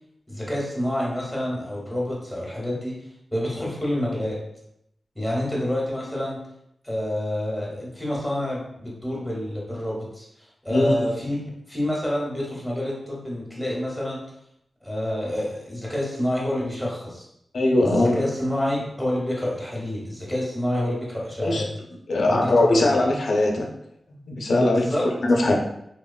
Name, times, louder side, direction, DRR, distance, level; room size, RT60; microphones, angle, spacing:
voice 1, 0.3-3.0 3.3-4.4 5.1-6.4 6.8-10.2 10.6-11.4 11.7-14.2 14.8-17.3 17.8-21.7 22.3-23.0 24.7-25.0, left 1 dB, 5° left, -4 dB, 0.9 m, -28 dB
voice 2, 10.7-11.1 17.5-18.2 21.4-21.7 22.1-23.7 24.3-25.5, left 2 dB, 75° left, 0 dB, 0.5 m, -20 dB
3.2 x 2.2 x 2.2 m, 0.77 s
wide cardioid pair, 95°, 0 cm